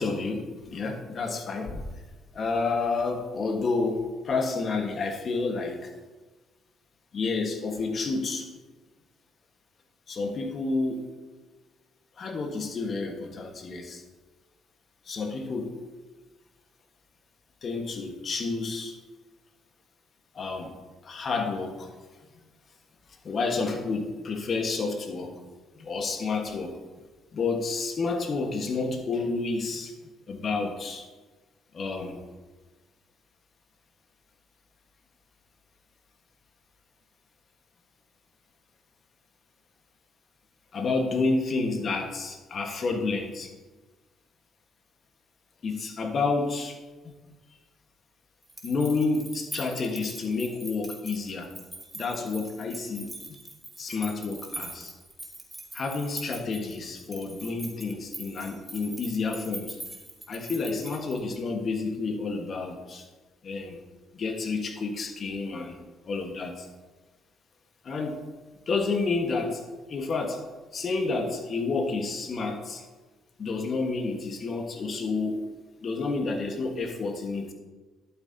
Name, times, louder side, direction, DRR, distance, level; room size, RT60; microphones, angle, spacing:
voice 1, 0.0-1.9 2.3-5.9 7.1-8.5 10.1-11.1 12.2-14.0 15.1-15.7 17.6-19.0 20.3-20.7 21.0-21.9 23.2-25.4 25.7-26.8 27.3-29.9 30.3-31.1 31.7-32.3 40.7-43.5 45.6-46.8 47.0-47.1 48.6-51.5 51.9-53.1 53.8-54.9 55.7-59.8 60.3-63.1 63.4-63.8 64.1-65.8 66.0-66.7 67.8-68.2 68.7-69.6 69.9-70.4 70.7-72.8 73.4-75.4 75.8-77.5, left 3 dB, 50° left, 4 dB, 1.4 m, -30 dB
sound 1, 48.4-61.5, right 1 dB, 10° right, 1.6 m, -42 dB
11.0 x 8.6 x 2.8 m, 1.3 s
supercardioid pair, 75°, 0 cm